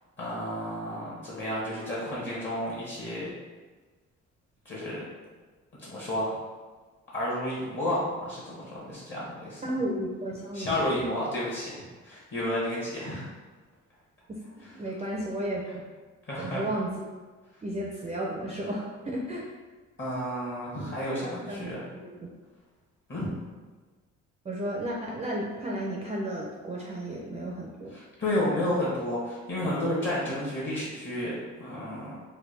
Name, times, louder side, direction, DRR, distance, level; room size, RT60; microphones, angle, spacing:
voice 1, 0.2-3.3 4.6-5.1 5.8-6.4 7.1-9.6 10.5-11.8 12.0-13.3 14.6-14.7 16.3-16.7 20.0-21.8 23.1-23.3 27.9-32.1, left 1 dB, 40° left, -6 dB, 1.1 m, -31 dB
voice 2, 9.6-10.9 14.7-15.6 16.4-16.9 17.6-19.5 21.5-22.3 23.2-23.3 24.5-27.9, right 1 dB, 20° right, -2 dB, 0.4 m, -33 dB
3.3 x 2.2 x 3.2 m, 1.3 s
cardioid pair, 90°, 30 cm